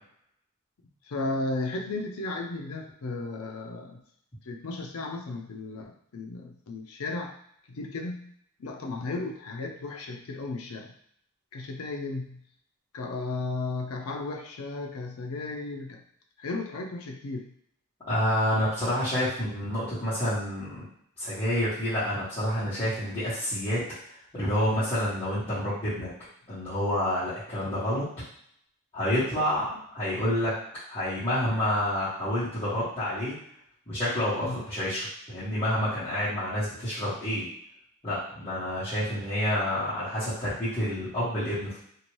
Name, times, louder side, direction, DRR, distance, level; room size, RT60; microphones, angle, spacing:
voice 1, 1.0-4.0 4.5-7.4 7.7-8.3 8.6-10.9 11.5-12.4 12.9-16.0 16.4-17.5 34.4-34.6, left 3 dB, 85° left, 3 dB, 0.5 m, -34 dB
voice 2, 18.1-20.8 21.2-23.8 24.3-26.1 26.5-28.0 28.9-30.5 30.9-33.3 33.9-37.5 38.0-41.8, equal, 30° left, -15 dB, 1.4 m, -28 dB
2.8 x 2.5 x 3.1 m, 0.68 s
head